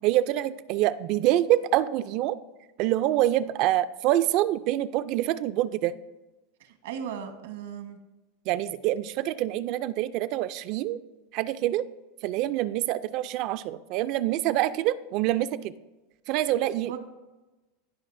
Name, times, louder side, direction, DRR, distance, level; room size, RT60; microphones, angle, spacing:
voice 1, 0.0-2.4 2.8-5.9 8.5-11.0 11.3-11.9 12.2-15.7 16.3-17.0, right 14 dB, 50° right, 14 dB, 0.3 m, -26 dB
voice 2, 6.6-8.0 16.8-17.0, right 8 dB, 85° right, 7 dB, 1.2 m, -37 dB
15.0 x 5.4 x 2.6 m, 1.1 s
supercardioid pair, 150°, 0 cm